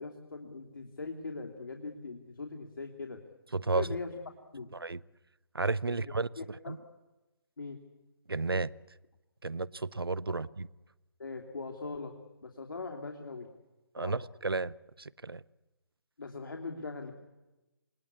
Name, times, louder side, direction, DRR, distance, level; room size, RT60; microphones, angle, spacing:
voice 1, 0.0-3.2 3.7-4.2 4.5-4.7 5.8-6.0 6.4-6.8 7.6-7.8 10.3-10.4 11.2-12.1 12.4-13.5 14.0-14.1 16.2-17.1, left 3 dB, 65° left, 3.0 m, -41 dB
voice 2, 3.5-3.9 4.7-5.0 5.5-6.3 6.7-6.8 8.3-8.7 9.4-10.7 13.9-15.4, right 3 dB, 75° right, 0.8 m, -32 dB
28.5 x 20.0 x 8.5 m
figure-of-eight pair, 140°, 12 cm